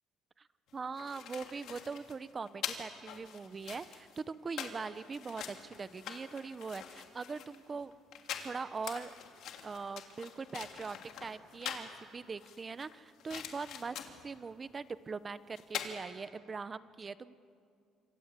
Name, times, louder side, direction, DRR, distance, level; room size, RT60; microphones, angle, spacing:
sound 1, 0.7-11.9 12.4-14.3 15.3-15.4 15.6-15.9, left 9 dB, 65° left, 3.0 m, -44 dB
voice 1, 0.7-7.9 8.4-9.1 9.6-14.0 14.2-17.3, right 4 dB, 25° right, 15 dB, 0.8 m, -41 dB
27.0 x 26.5 x 8.3 m, 2.4 s
cardioid pair, 125°, 0 cm